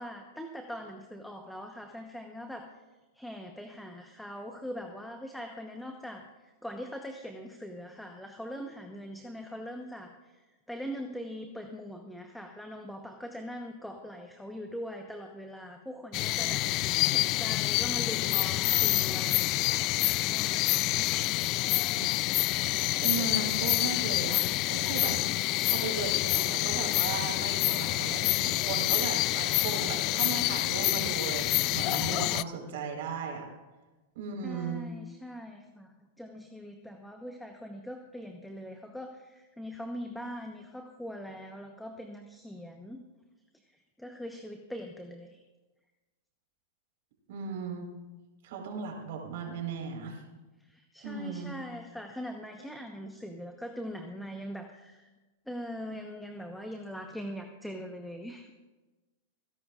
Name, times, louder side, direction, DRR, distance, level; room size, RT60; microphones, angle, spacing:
voice 1, 0.0-2.7 3.1-19.9 20.2-21.2 34.4-35.9 36.2-43.0 44.0-45.4 50.6-55.1 55.5-58.5, equal, ahead, 3 dB, 1.0 m, -42 dB
sound 1, 16.1-32.4, left 19 dB, 45° left, 0.3 m, -27 dB
voice 2, 23.0-33.4 34.1-34.9 47.3-47.9 48.4-50.2 51.0-51.5, right 5 dB, 65° right, 1 dB, 4.3 m, -36 dB
29.0 x 10.5 x 2.5 m, 1.2 s
hypercardioid pair, 125°, 0 cm